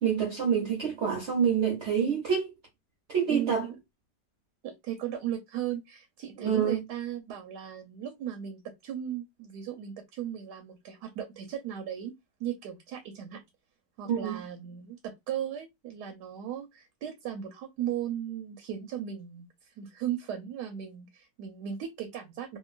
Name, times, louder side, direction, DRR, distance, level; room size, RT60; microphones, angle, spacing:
voice 1, 0.0-2.5 3.1-3.7 6.4-6.8 14.1-14.4, right 7 dB, 55° right, 0.7 m, -27 dB
voice 2, 3.3-3.8 4.6-12.1 12.4-13.4 14.0-22.6, right 10 dB, 75° right, 1.1 m, -37 dB
2.9 x 2.5 x 2.3 m
omnidirectional pair, 2.0 m